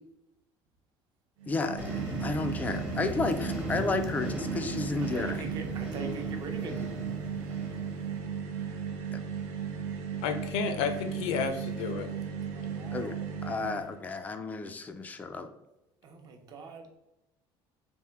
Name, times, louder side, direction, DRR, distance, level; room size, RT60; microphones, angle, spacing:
sound 1, 1.4-14.0, right 7 dB, 90° right, 0.7 m, -36 dB
voice 1, 1.5-5.4 9.1-9.2 12.9-13.2 13.4-15.5, left 3 dB, 15° left, 8 dB, 0.3 m, -32 dB
sound 2, 1.8-8.2, equal, 10° right, 0.7 m, -38 dB
voice 2, 5.1-7.1 12.4-13.2 13.7-13.8 16.0-16.9, right 3 dB, 40° right, 4 dB, 0.7 m, -42 dB
voice 3, 10.2-12.1, left 6 dB, 90° left, 7 dB, 0.6 m, -31 dB
3.4 x 2.5 x 4.5 m, 0.94 s
cardioid pair, 170°, 10 cm